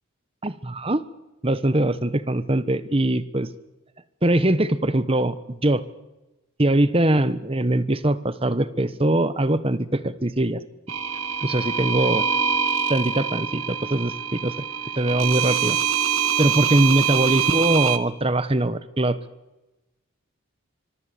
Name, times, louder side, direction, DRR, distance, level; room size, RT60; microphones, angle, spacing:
voice 1, 0.4-1.0 1.4-3.5 4.2-5.8 6.6-10.6 11.4-12.2 12.9-14.7 15.0-15.8 16.4-19.2, right 1 dB, 25° right, 13 dB, 1.1 m, -22 dB
sound 1, 10.9-18.0, right 7 dB, 80° right, 1.5 m, -24 dB
25.0 x 23.5 x 7.0 m, 1.0 s
head